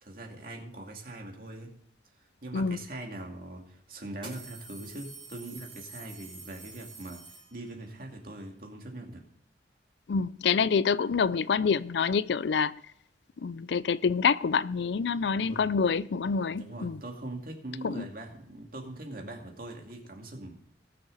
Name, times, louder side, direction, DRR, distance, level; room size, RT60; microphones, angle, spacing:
voice 1, 0.0-1.7 2.4-9.2 15.4-15.6 16.5-20.5, right 1 dB, 50° right, 2.3 m, -42 dB
sound 1, 4.2-7.9, right 4 dB, 30° right, 3.7 m, -47 dB
voice 2, 10.1-12.7 13.4-17.0 17.8-18.1, left 5 dB, 70° left, 0.4 m, -27 dB
19.5 x 6.7 x 4.0 m
head